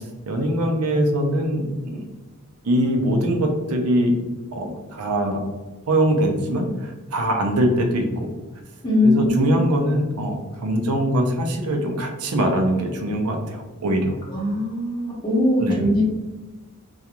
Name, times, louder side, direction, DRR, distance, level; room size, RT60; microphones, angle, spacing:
voice 1, 0.3-2.0 2.6-4.2 4.5-5.4 5.9-8.3 9.0-14.2 15.6-15.8, right 1 dB, 90° right, 3 dB, 0.5 m, -22 dB
voice 2, 8.8-9.6 14.3-16.0, left 1 dB, 20° left, -6 dB, 0.7 m, -21 dB
2.4 x 2.3 x 2.8 m, 1.2 s
head